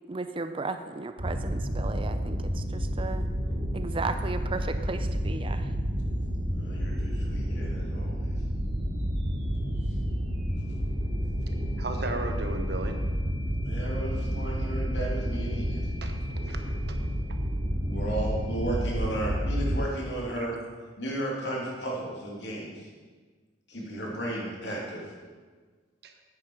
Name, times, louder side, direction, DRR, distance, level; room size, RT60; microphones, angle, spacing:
voice 1, 0.1-3.3 3.7-5.7, right 3 dB, 30° right, 9 dB, 0.5 m, -35 dB
sound 1, 1.2-19.8, equal, 80° right, 3.1 m, -30 dB
voice 2, 6.5-8.3 13.6-15.9 17.9-20.6 21.0-22.9 23.7-25.1, right 1 dB, 70° left, -3 dB, 2.8 m, -34 dB
voice 3, 11.8-13.0 16.0-16.6 16.9-17.0 20.4-20.5 26.0-26.1, right 2 dB, 65° right, 5 dB, 1.1 m, -35 dB
10.0 x 9.0 x 4.9 m, 1.4 s
head